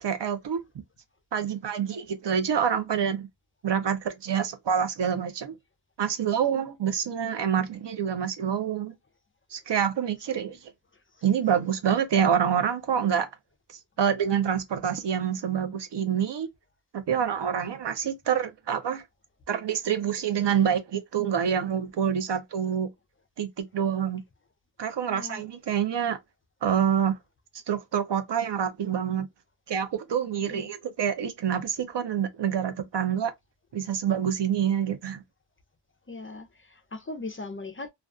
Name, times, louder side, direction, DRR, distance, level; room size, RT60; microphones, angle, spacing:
voice 1, 0.0-0.6 1.3-3.3 3.6-5.5 6.0-8.9 9.5-10.6 11.2-13.3 14.0-16.5 16.9-19.0 19.5-22.9 23.4-24.2 24.8-26.2 26.6-27.2 27.7-29.3 29.7-33.3 33.7-35.2, right 8 dB, 65° right, 0.6 m, -27 dB
voice 2, 10.3-10.6 25.0-25.4 30.5-30.7 36.1-37.9, left 2 dB, 30° left, 0.4 m, -39 dB
2.3 x 2.3 x 2.3 m
wide cardioid pair, 85°, 46 cm